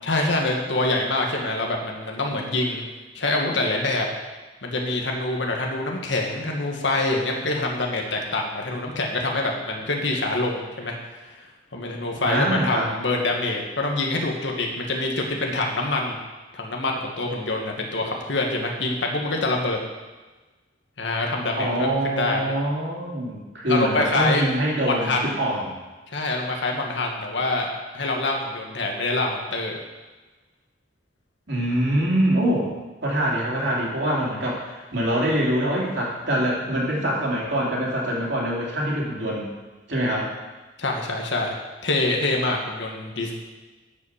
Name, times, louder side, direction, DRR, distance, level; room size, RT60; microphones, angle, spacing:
voice 1, 0.0-2.8 3.1-4.1 4.6-10.9 11.7-16.2 16.5-19.8 21.0-22.5 23.7-24.4 24.9-25.2 26.1-29.7 40.8-41.6 41.8-43.3, left 2 dB, 75° left, 1 dB, 1.5 m, -25 dB
voice 2, 12.2-12.9 21.6-25.8 31.5-32.7 33.0-39.5 39.9-40.3, right 1 dB, 65° right, -4 dB, 3.0 m, -24 dB
10.5 x 5.6 x 7.2 m, 1.2 s
head